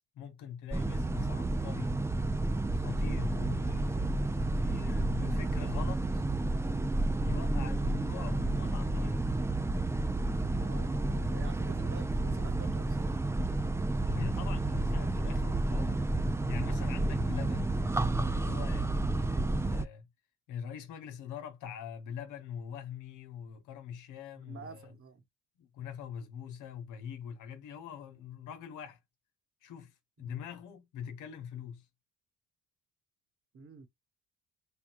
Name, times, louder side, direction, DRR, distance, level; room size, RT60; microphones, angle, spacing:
voice 1, 0.1-2.0 2.7-6.2 7.2-9.3 14.1-16.0 16.5-17.8 18.1-20.1 20.5-24.9 25.6-29.0 29.6-31.8, left 8 dB, 90° left, 1.0 m, -43 dB
sound 1, 0.7-19.8, right 2 dB, 10° right, 0.4 m, -31 dB
voice 2, 10.5-13.2 24.4-25.2 30.2-30.3 33.5-33.9, right 4 dB, 45° right, 1.2 m, -49 dB
3.5 x 2.2 x 4.4 m
cardioid pair, 90°, 30 cm